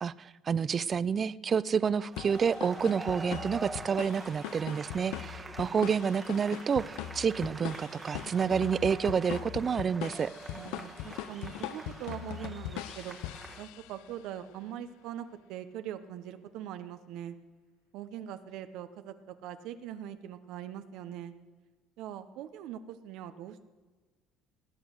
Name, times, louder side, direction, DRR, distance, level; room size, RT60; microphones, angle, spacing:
voice 1, 0.0-10.3, right 6 dB, 30° right, 19 dB, 0.3 m, -29 dB
sound 1, 2.0-13.7, right 3 dB, 15° right, 1.3 m, -45 dB
sound 2, 2.2-14.1, left 14 dB, 85° left, 0.5 m, -41 dB
voice 2, 10.5-13.2 13.6-17.4 17.9-21.3 22.0-23.6, right 10 dB, 70° right, 10 dB, 0.8 m, -42 dB
19.0 x 8.3 x 6.6 m, 1.3 s
cardioid pair, 130°, 0 cm